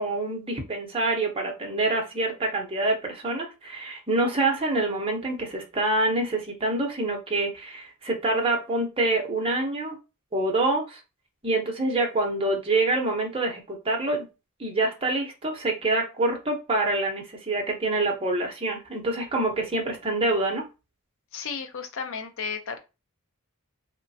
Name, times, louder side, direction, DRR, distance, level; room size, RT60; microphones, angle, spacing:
voice 1, 0.0-10.0 10.3-11.0 11.4-14.3 14.6-20.6, right 2 dB, 25° right, 1 dB, 0.7 m, -26 dB
voice 2, 21.3-22.8, left 5 dB, 60° left, 7 dB, 0.5 m, -33 dB
3.0 x 2.1 x 2.6 m, 0.27 s
head